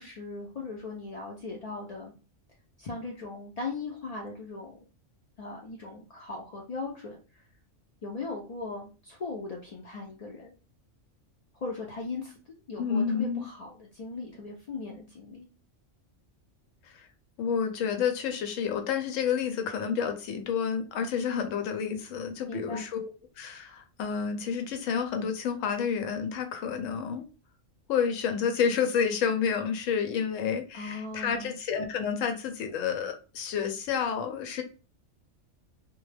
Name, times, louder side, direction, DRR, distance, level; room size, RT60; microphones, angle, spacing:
voice 1, 0.0-2.1 2.8-4.8 5.4-7.4 8.0-10.5 11.5-12.3 12.7-15.5 22.5-22.9 30.7-31.5, left 3 dB, 65° left, -2 dB, 0.3 m, -38 dB
voice 2, 12.8-13.5 16.8-17.1 17.4-23.1 23.4-27.2 27.9-34.6, left 7 dB, 85° left, 6 dB, 1.0 m, -29 dB
2.2 x 2.1 x 3.2 m, 0.33 s
omnidirectional pair, 1.3 m